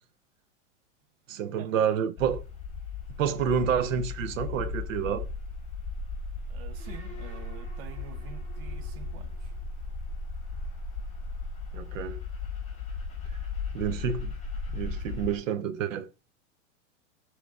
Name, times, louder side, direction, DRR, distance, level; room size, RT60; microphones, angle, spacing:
voice 1, 1.3-2.4 3.2-5.2 11.7-12.2 13.7-14.3 14.7-16.1, right 8 dB, 80° right, 0.9 m, -28 dB
sound 1, 2.2-15.4, left 4 dB, 15° left, 4.7 m, -36 dB
voice 2, 6.5-9.6 14.8-15.2, right 10 dB, 45° right, 0.8 m, -48 dB
12.5 x 5.0 x 2.4 m
supercardioid pair, 145°, 39 cm